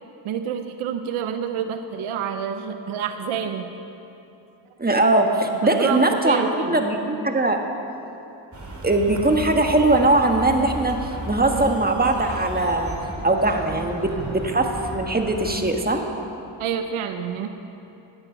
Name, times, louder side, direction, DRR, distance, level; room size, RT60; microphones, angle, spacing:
voice 1, 0.2-3.7 5.6-6.8 16.6-17.5, right 8 dB, 90° right, 8 dB, 0.7 m, -28 dB
voice 2, 4.8-7.6 8.8-13.0 13.2-16.0, right 2 dB, 20° right, 4 dB, 1.4 m, -21 dB
sound 1, 8.5-15.6, right 1 dB, 35° right, 2.8 m, -34 dB
13.5 x 9.1 x 5.7 m, 2.9 s
cardioid pair, 55°, 48 cm